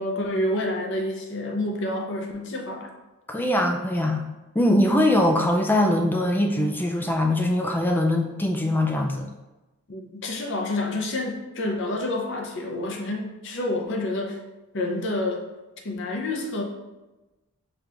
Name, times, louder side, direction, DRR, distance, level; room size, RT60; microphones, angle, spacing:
voice 1, 0.0-2.9 9.9-14.4 14.7-15.5 15.8-16.6, left 1 dB, 55° left, 2 dB, 0.6 m, -28 dB
voice 2, 3.3-4.2 4.5-9.3, left 1 dB, 10° left, 2 dB, 0.3 m, -22 dB
5.0 x 2.4 x 2.9 m, 1.1 s
head